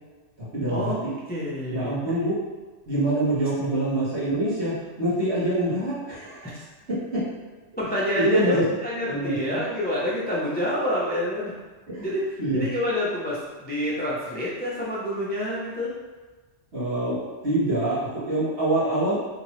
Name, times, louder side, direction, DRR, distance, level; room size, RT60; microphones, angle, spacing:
voice 1, 0.5-1.1 1.7-2.3 2.9-6.5 8.2-8.6 9.1-9.6 11.9-12.1 12.4-12.6 16.7-19.1, right 1 dB, 60° right, -11 dB, 1.8 m, -25 dB
voice 2, 1.3-2.0 6.4-6.6 7.8-11.5 12.0-15.9, left 1 dB, 15° left, -7 dB, 0.3 m, -27 dB
3.4 x 2.9 x 3.0 m, 1.3 s
omnidirectional pair, 1.2 m